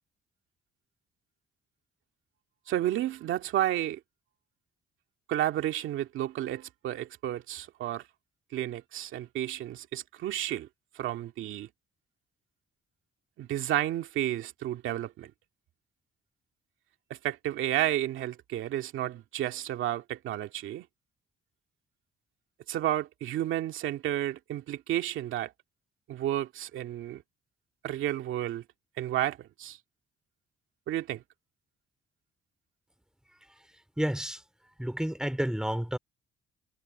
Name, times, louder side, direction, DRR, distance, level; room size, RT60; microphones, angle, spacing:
voice 1, 2.7-4.0 5.3-8.0 8.5-10.7 10.9-11.7 13.4-15.3 17.1-20.9 22.7-25.5 26.1-27.2 27.8-28.6 29.0-29.8 30.9-31.2, right 12 dB, 80° right, 2.1 m, -31 dB
voice 2, 34.0-34.4 34.8-36.0, equal, 5° right, 2.6 m, -30 dB
cardioid pair, 90°, 20 cm